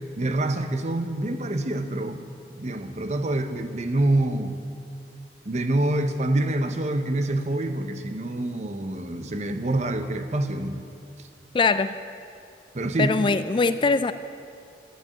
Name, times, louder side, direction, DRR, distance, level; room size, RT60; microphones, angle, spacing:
voice 1, 0.2-2.2 2.5-4.6 5.4-10.8 12.7-13.1, right 1 dB, 40° right, 8 dB, 0.8 m, -26 dB
voice 2, 11.5-12.0 13.0-14.1, left 4 dB, 30° left, 12 dB, 0.3 m, -22 dB
11.0 x 9.2 x 10.0 m, 2.4 s
head